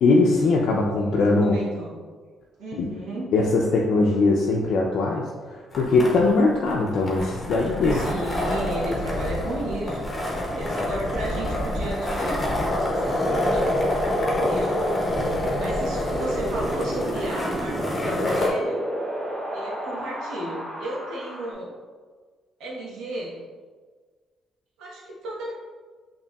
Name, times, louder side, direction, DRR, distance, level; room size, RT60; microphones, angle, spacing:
voice 1, 0.0-1.6 2.8-2.9 3.3-8.0, left 3 dB, 70° left, -2 dB, 0.4 m, -21 dB
voice 2, 1.0-2.0 2.6-3.3 7.9-12.4 12.8-18.8 19.5-21.7 22.6-23.5 24.8-25.5, right 1 dB, 85° right, -5 dB, 1.1 m, -34 dB
sound 1, 5.7-18.5, left 1 dB, 25° left, 0.8 m, -27 dB
Wind, 16.1-21.5, equal, 65° right, 1.3 m, -31 dB
4.6 x 2.9 x 2.3 m, 1.5 s
cardioid pair, 90°, 0 cm